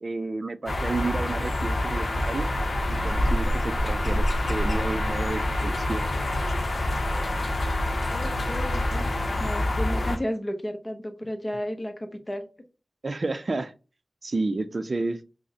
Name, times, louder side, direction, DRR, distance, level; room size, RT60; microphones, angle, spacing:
voice 1, 0.0-2.5 3.0-6.1 13.0-13.7 14.2-15.2, right 3 dB, 55° right, 12 dB, 0.3 m, -31 dB
sound 1, 0.7-10.2, left 1 dB, 75° left, 0.6 m, -26 dB
voice 2, 8.1-9.1 9.4-12.5, equal, 25° left, 6 dB, 0.7 m, -33 dB
5.0 x 2.1 x 2.7 m, 0.33 s
wide cardioid pair, 75°, 0 cm